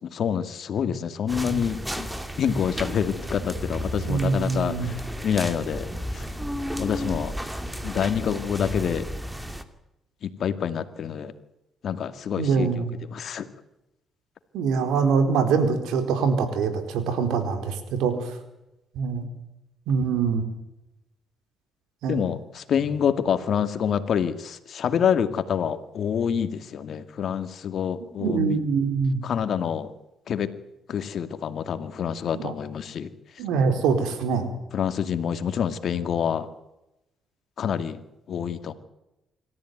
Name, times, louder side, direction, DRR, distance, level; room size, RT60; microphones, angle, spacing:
voice 1, 0.0-2.1 2.4-5.9 6.1-6.3 6.8-7.4 7.8-9.1 10.2-11.3 11.8-13.5 22.1-28.6 29.2-29.9 30.3-30.5 30.9-33.1 34.7-36.5 37.6-38.0 38.3-38.7, left 8 dB, 60° left, 10 dB, 2.2 m, -27 dB
sound 1, 1.3-9.6, equal, 5° right, 2.5 m, -33 dB
voice 2, 4.1-4.9 12.4-12.9 14.5-18.4 18.9-19.3 19.9-20.4 22.0-22.2 28.2-29.2 32.3-32.5 33.4-34.5, right 5 dB, 90° right, 8 dB, 4.2 m, -24 dB
26.0 x 14.0 x 9.4 m, 0.92 s
cardioid pair, 90°, 0 cm